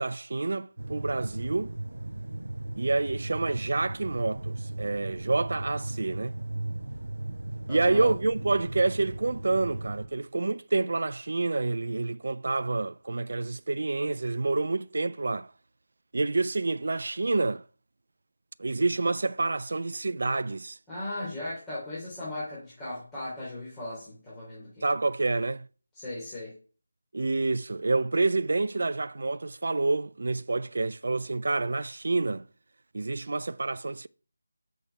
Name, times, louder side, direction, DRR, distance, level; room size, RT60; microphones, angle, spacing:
voice 1, 0.0-1.7 2.8-6.4 7.7-15.5 16.1-17.6 18.6-20.8 24.8-25.7 27.1-32.4 32.9-34.1, right 3 dB, 65° right, 0.4 m, -28 dB
sound 1, 0.8-10.1, right 2 dB, 85° right, 0.8 m, -36 dB
voice 2, 7.7-8.1 20.9-24.8 25.9-26.5, left 1 dB, 10° left, 3.1 m, -37 dB
6.5 x 6.3 x 5.7 m
figure-of-eight pair, 165°, 0 cm